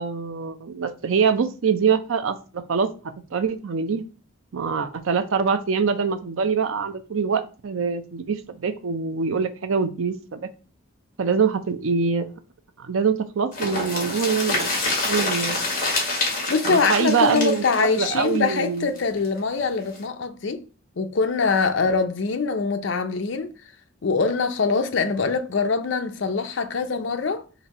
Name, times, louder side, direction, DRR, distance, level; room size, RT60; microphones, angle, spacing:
voice 1, 0.0-4.0 4.5-10.5 11.2-12.3 12.8-15.6 16.7-18.9 21.9-22.0, right 5 dB, 75° right, 0.5 m, -24 dB
sound 1, 13.5-19.3 19.6-19.7 19.9-20.0, left 2 dB, 40° left, 1.8 m, -27 dB
voice 2, 16.5-20.6 21.0-23.5 24.0-27.4, left 4 dB, 60° left, 0.5 m, -23 dB
4.0 x 2.7 x 4.1 m
head